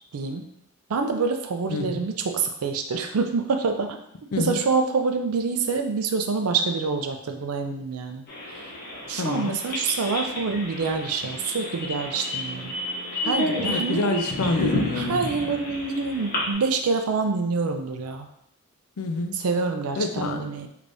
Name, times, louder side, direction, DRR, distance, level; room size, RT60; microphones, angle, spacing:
voice 1, 0.1-0.5 0.9-4.0 4.4-8.2 9.1-12.7 13.2-14.3 15.0-18.3 19.4-20.7, right 4 dB, 90° right, 6 dB, 0.4 m, -26 dB
voice 2, 1.7-2.1 4.3-4.6 9.2-9.6 13.7-15.2 19.0-19.4 20.0-20.5, left 3 dB, 90° left, 6 dB, 0.5 m, -28 dB
sound 1, 8.3-16.5, left 1 dB, 50° left, 0.9 m, -30 dB
3.3 x 3.3 x 2.6 m, 0.75 s
head